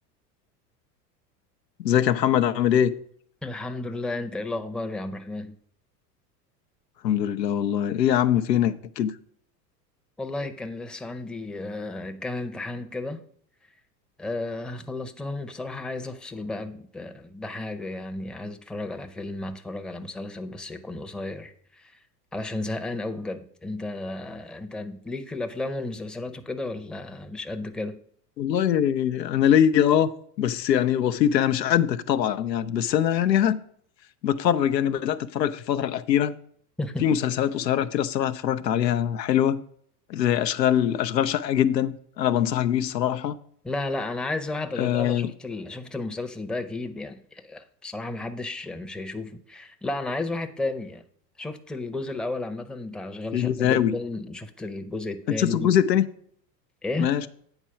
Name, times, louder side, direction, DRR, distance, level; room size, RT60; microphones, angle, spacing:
voice 1, 1.8-2.9 7.0-9.1 28.4-30.1 30.4-33.6 34.2-36.4 37.0-39.6 40.1-43.4 44.8-45.3 53.3-53.9 55.4-56.0 57.0-57.3, left 10 dB, 85° left, 0.7 m, -22 dB
voice 2, 3.4-5.6 10.2-13.2 14.2-22.0 22.3-28.0 36.8-37.0 43.6-51.0 51.4-55.7 56.8-57.2, left 2 dB, ahead, 0.6 m, -33 dB
8.9 x 4.5 x 5.7 m
hypercardioid pair, 85°, 49 cm